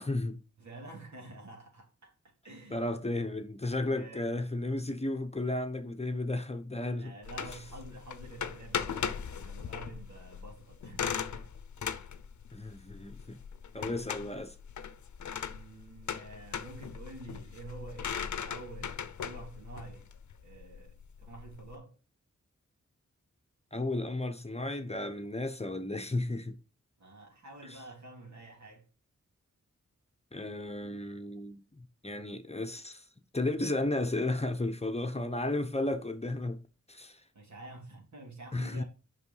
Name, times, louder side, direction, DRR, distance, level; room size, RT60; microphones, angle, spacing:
voice 1, 0.0-0.4 2.7-7.1 7.4-7.5 12.5-13.4 13.7-14.5 23.7-26.6 27.7-27.8 30.3-33.0 33.3-36.6 36.9-37.2 38.5-38.8, left 2 dB, 20° left, 0.9 m, -33 dB
voice 2, 0.6-2.1 2.4-2.9 3.2-3.4 3.9-4.4 7.0-11.5 13.8-14.0 15.5-20.1 20.4-22.0 27.0-28.9 37.3-38.8, right 2 dB, 70° right, 3.2 m, -49 dB
sound 1, 7.2-21.7, left 7 dB, 75° left, 0.7 m, -39 dB
6.8 x 5.7 x 5.5 m
cardioid pair, 55°, 29 cm